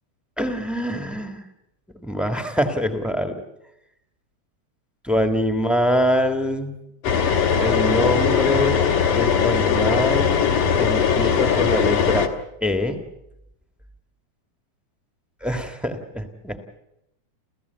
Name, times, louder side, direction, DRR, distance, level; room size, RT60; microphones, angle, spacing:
voice 1, 0.4-1.4 2.0-3.4 5.0-6.8 7.6-8.8 9.1-10.3 10.8-12.3 12.6-13.0 15.4-16.8, equal, ahead, 6 dB, 0.3 m, -24 dB
sound 1, 7.0-12.3, left 7 dB, 90° left, 3.1 m, -20 dB
30.0 x 15.0 x 8.1 m, 0.86 s
omnidirectional pair, 3.4 m